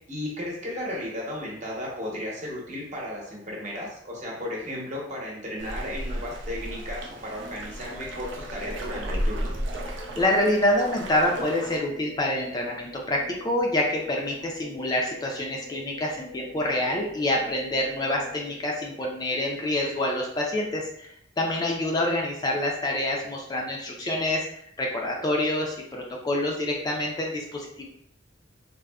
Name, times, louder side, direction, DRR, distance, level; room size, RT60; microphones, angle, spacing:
voice 1, 0.1-9.5, left 1 dB, 40° right, -3 dB, 0.8 m, -34 dB
sound 1, 5.6-11.8, equal, 80° right, 0.5 m, -34 dB
sound 2, 7.3-19.4, left 3 dB, 90° left, 0.6 m, -47 dB
voice 2, 10.2-27.9, left 1 dB, 20° left, 0 dB, 0.3 m, -27 dB
3.4 x 2.0 x 2.2 m, 0.72 s
head